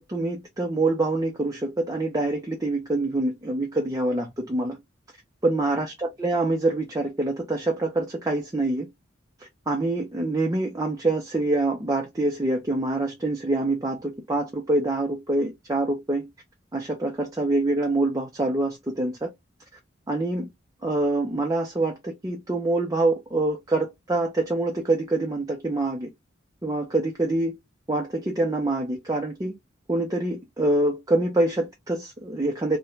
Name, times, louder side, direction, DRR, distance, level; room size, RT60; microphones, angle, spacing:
voice 1, 0.0-4.8 5.4-8.9 9.7-16.3 16.7-19.3 20.1-20.5 20.8-26.1 26.6-27.6 27.9-29.5 29.9-32.8, right 2 dB, 20° right, 0.5 m, -25 dB
3.0 x 2.1 x 2.4 m
head